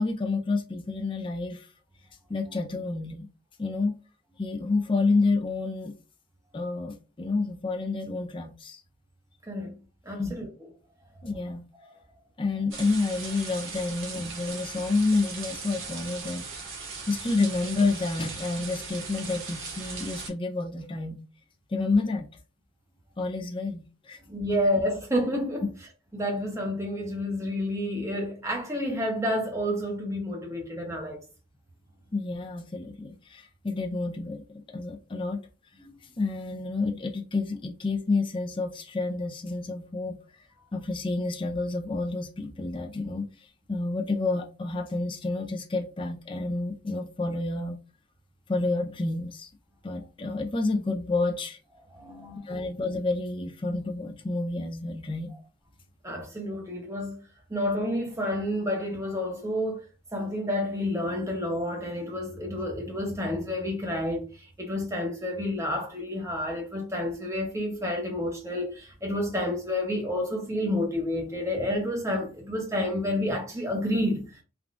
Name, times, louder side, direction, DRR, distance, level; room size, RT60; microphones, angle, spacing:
voice 1, 0.0-1.7 2.3-3.3 3.6-4.0 4.4-5.9 6.5-8.8 10.2-10.3 11.2-11.7 12.4-16.5 17.1-21.2 21.7-22.3 23.2-24.2 25.6-25.7 32.1-35.4 36.2-40.2 40.7-43.3 43.7-47.8 48.5-49.5 49.8-51.6 52.5-55.3, left 3 dB, 25° left, 0.3 m, -29 dB
voice 2, 10.0-10.5 24.3-25.7 26.1-31.2 51.9-52.5 56.0-59.8 60.1-74.4, left 1 dB, 15° right, 0.8 m, -30 dB
sound 1, 12.7-20.3, right 4 dB, 70° right, 1.1 m, -39 dB
3.5 x 2.2 x 2.4 m
head